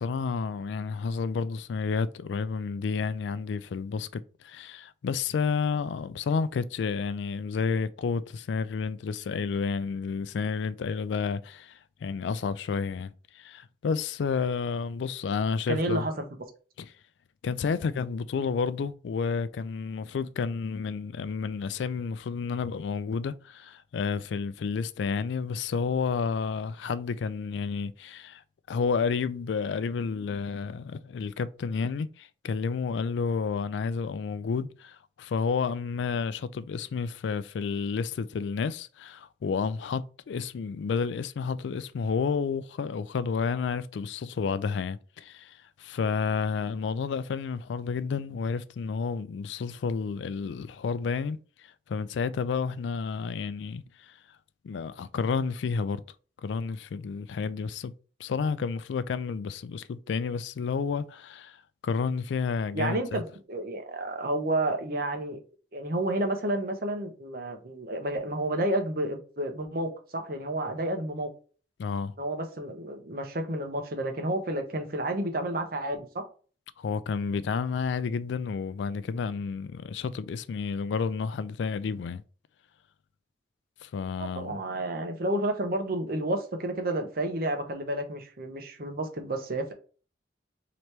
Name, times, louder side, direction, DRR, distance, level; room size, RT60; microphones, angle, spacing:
voice 1, 0.0-16.1 16.8-16.9 17.4-28.4 28.7-51.4 51.9-54.1 54.6-56.0 56.4-57.9 58.2-61.6 61.8-63.2 71.8-72.1 76.8-82.2 83.8-84.6, left 5 dB, 80° left, 0.3 m, -30 dB
voice 2, 15.7-16.1 62.7-63.2 63.5-65.4 65.7-71.3 72.2-76.3 84.2-89.7, right 1 dB, 55° right, 0.8 m, -30 dB
3.3 x 3.0 x 4.3 m
head